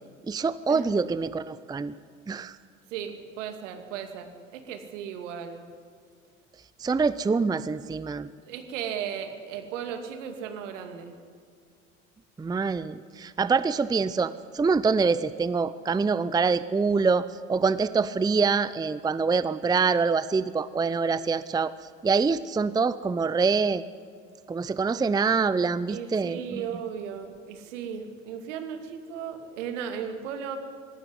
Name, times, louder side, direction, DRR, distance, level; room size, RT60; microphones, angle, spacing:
voice 1, 0.3-1.9 2.3-2.6 6.8-8.3 12.4-21.7 22.0-23.8 24.5-26.7, right 4 dB, 10° right, 16 dB, 0.6 m, -25 dB
voice 2, 2.9-5.7 8.5-11.1 25.9-30.6, right 8 dB, 70° right, 6 dB, 2.6 m, -36 dB
20.0 x 17.0 x 9.8 m, 2.2 s
hypercardioid pair, 70°, 38 cm